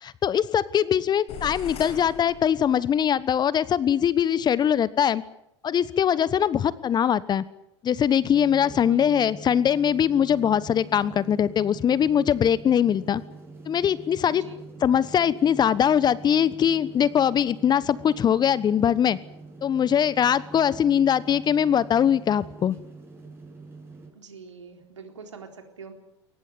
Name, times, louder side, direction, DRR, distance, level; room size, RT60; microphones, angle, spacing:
voice 1, 0.0-5.2 5.6-7.4 7.8-13.2 13.7-14.4 14.8-19.2 19.6-22.8, left 9 dB, 30° left, 19 dB, 1.1 m, -22 dB
sound 1, 1.3-3.1, left 7 dB, 45° left, 6.5 m, -40 dB
sound 2, 8.2-24.1, right 3 dB, 15° right, 7.1 m, -44 dB
voice 2, 8.6-9.0 14.3-14.6 24.2-25.9, right 5 dB, 80° right, 5 dB, 3.9 m, -44 dB
22.5 x 19.5 x 9.5 m, 0.77 s
figure-of-eight pair, 85°, 15 cm